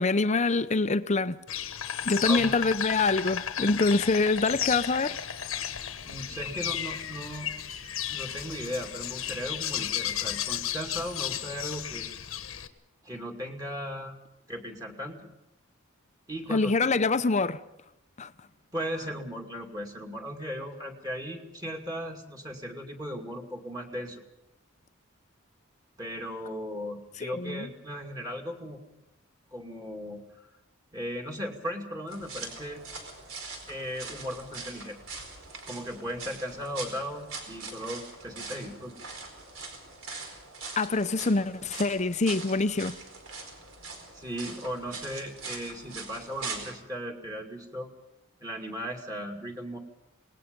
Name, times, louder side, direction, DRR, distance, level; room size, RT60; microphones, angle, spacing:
voice 1, 0.0-1.4 2.0-5.2 16.5-17.6 18.2-18.3 27.2-27.7 40.8-42.9, left 3 dB, 35° left, 0.7 m, -25 dB
Insect, 1.5-12.7, left 10 dB, 75° left, 1.3 m, -33 dB
voice 2, 1.8-2.5 6.0-7.5 8.1-12.1 13.0-14.2 14.5-15.2 16.3-16.7 18.7-24.2 26.0-28.8 29.5-30.2 30.9-32.8 33.7-35.0 35.7-38.9 44.1-47.9 48.4-49.8, equal, 20° right, 2.5 m, -37 dB
sound 1, 32.1-46.7, right 4 dB, 70° right, 4.5 m, -42 dB
27.5 x 19.5 x 5.3 m
head